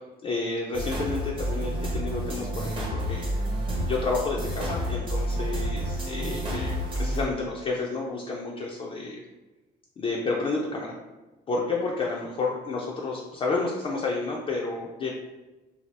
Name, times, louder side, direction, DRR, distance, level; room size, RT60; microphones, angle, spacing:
voice 1, 0.2-3.3 3.8-9.2 10.0-10.9 11.5-15.1, left 3 dB, 30° left, -2 dB, 0.3 m, -30 dB
sound 1, 0.7-7.2, right 1 dB, 30° right, 0.7 m, -29 dB
2.7 x 2.3 x 3.2 m, 1.1 s
cardioid pair, 125°, 18 cm